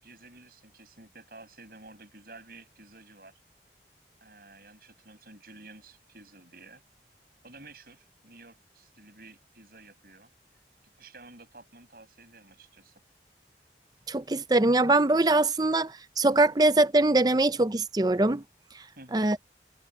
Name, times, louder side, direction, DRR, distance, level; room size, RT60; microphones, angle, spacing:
voice 1, 0.0-3.4 4.2-6.8 7.4-10.3 11.0-13.0 18.9-19.4, right 2 dB, 55° right, 6.8 m, -51 dB
voice 2, 14.1-18.4 19.1-19.4, right 2 dB, 20° right, 0.6 m, -23 dB
head